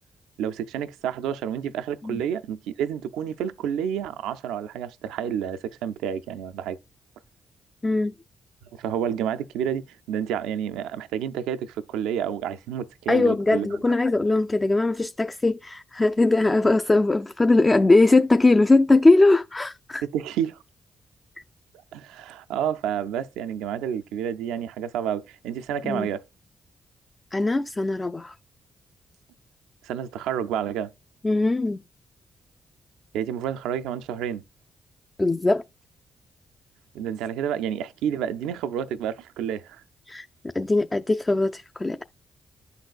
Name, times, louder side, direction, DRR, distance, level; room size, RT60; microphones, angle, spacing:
voice 1, 0.4-6.8 8.7-13.7 20.0-20.6 21.9-26.3 29.8-30.9 33.1-34.4 36.9-39.8, right 9 dB, 85° right, 0.3 m, -29 dB
voice 2, 7.8-8.1 13.1-20.0 25.8-26.1 27.3-28.3 31.2-31.8 35.2-35.6 40.1-40.3 40.5-42.0, left 2 dB, 25° left, 0.4 m, -20 dB
11.5 x 4.0 x 2.3 m
supercardioid pair, 50°, 0 cm